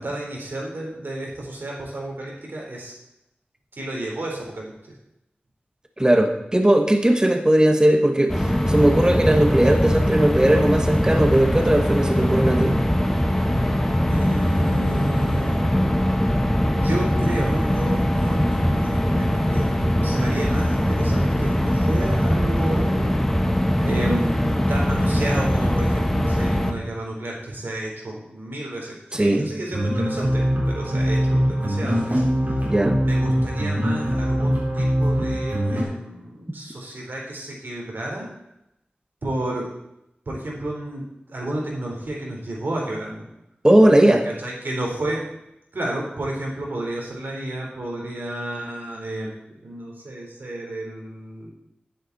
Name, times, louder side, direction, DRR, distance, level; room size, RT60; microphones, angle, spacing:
voice 1, 0.0-2.9 3.7-4.7 14.1-15.6 16.7-23.1 23.8-32.2 33.0-38.3 39.2-39.7 40.3-43.2 44.2-45.2 45.7-51.5, right 1 dB, 80° right, -2 dB, 3.9 m, -31 dB
voice 2, 6.0-12.8 29.1-29.5 32.7-33.0 43.6-44.3, right 1 dB, 20° right, 5 dB, 1.3 m, -18 dB
sound 1, 8.3-26.7, equal, 10° left, 1.4 m, -21 dB
sound 2, 29.7-35.8, equal, 50° right, 3.5 m, -22 dB
11.0 x 10.0 x 4.2 m, 0.82 s
wide cardioid pair, 60°, 4 cm